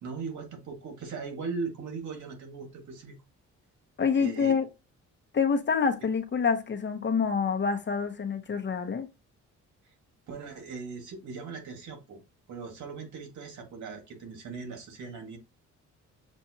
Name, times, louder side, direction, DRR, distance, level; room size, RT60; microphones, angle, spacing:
voice 1, 0.0-3.1 4.1-4.6 10.3-12.2 12.5-15.4, right 4 dB, 75° right, 2.0 m, -39 dB
voice 2, 4.0-4.7 5.3-9.1, left 6 dB, 35° left, 1.0 m, -27 dB
7.2 x 2.6 x 2.8 m
cardioid pair, 90°, 30 cm